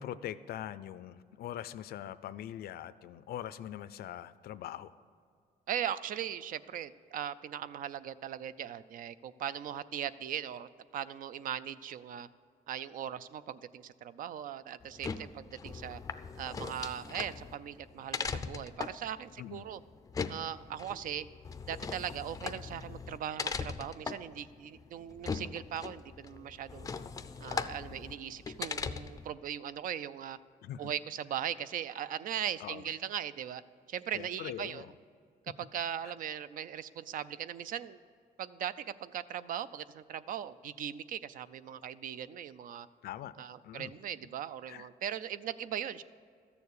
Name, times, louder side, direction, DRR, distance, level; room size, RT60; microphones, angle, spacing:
voice 1, 0.0-4.9 19.4-19.6 30.6-30.9 32.6-32.8 34.1-34.9 36.1-36.2 43.0-43.3 43.6-43.9 44.7-44.9, left 11 dB, 80° left, 15 dB, 0.5 m, -42 dB
voice 2, 5.7-12.3 12.7-16.0 16.4-19.8 20.3-21.3 21.7-26.9 27.4-30.4 30.8-33.6 33.9-34.8 35.6-38.0 38.4-42.9 43.4-46.0, right 10 dB, 60° right, 15 dB, 0.4 m, -39 dB
sound 1, 14.8-29.3, left 5 dB, 20° left, 0.4 m, -40 dB
13.5 x 7.0 x 8.3 m, 2.2 s
cardioid pair, 155°, 16 cm